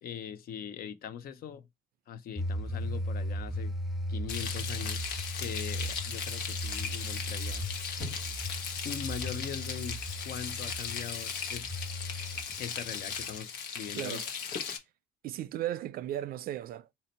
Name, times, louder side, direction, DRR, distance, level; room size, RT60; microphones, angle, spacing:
voice 1, 0.0-1.7 2.1-3.7 4.1-5.0 5.4-7.6 8.8-10.0 10.2-11.7 12.6-14.2, left 8 dB, 60° left, 0.7 m, -41 dB
sound 1, 2.4-13.4, equal, ahead, 0.6 m, -37 dB
Frying (food), 4.3-14.8, left 6 dB, 80° left, 1.1 m, -37 dB
voice 2, 13.9-14.3 15.2-16.9, right 12 dB, 60° right, 0.4 m, -36 dB
4.2 x 2.7 x 4.3 m
cardioid pair, 110°, 17 cm